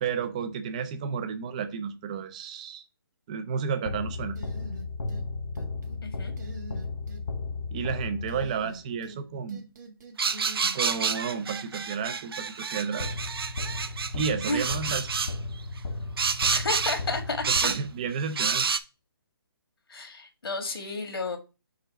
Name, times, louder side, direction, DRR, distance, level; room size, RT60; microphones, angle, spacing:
voice 1, 0.0-2.8 3.3-4.4 7.7-9.6 10.7-13.1 14.1-15.1 17.5-18.6, right 6 dB, 20° right, 0.4 m, -32 dB
sound 1, 3.9-9.0 13.0-18.2, left 3 dB, 60° left, 0.7 m, -35 dB
sound 2, 4.4-5.3 5.6-6.0 6.4-7.2 8.3-9.2 9.5-11.1, right 2 dB, 50° right, 1.8 m, -44 dB
voice 2, 6.0-6.3 14.5-14.7 16.5-17.7 19.9-21.4, left 3 dB, 80° left, 1.7 m, -31 dB
sound 3, 10.2-15.3 16.2-17.0 17.4-17.8 18.4-18.8, right 5 dB, 75° right, 0.6 m, -29 dB
4.8 x 3.9 x 5.8 m
hypercardioid pair, 165°, 13 cm